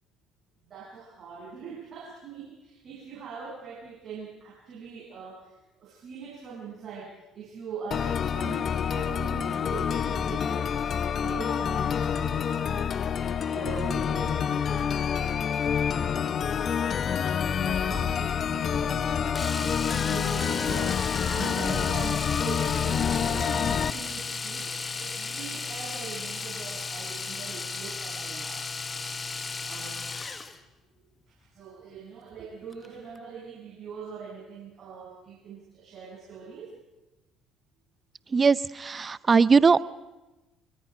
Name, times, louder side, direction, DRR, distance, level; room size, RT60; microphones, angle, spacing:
voice 1, 0.6-10.7 11.2-12.9 13.3-14.8 17.4-28.7 29.6-30.0 31.3-36.8, right 6 dB, 50° right, -5 dB, 7.9 m, -42 dB
sound 1, 7.9-23.9, left 7 dB, 50° left, 0.9 m, -27 dB
Domestic sounds home sounds, 19.4-30.6 32.7-32.9 33.2-33.3, left 4 dB, 30° left, 1.7 m, -35 dB
voice 2, 38.3-39.8, right 5 dB, 35° right, 19 dB, 0.6 m, -20 dB
26.0 x 23.0 x 5.1 m, 1.1 s
hypercardioid pair, 65°, 0 cm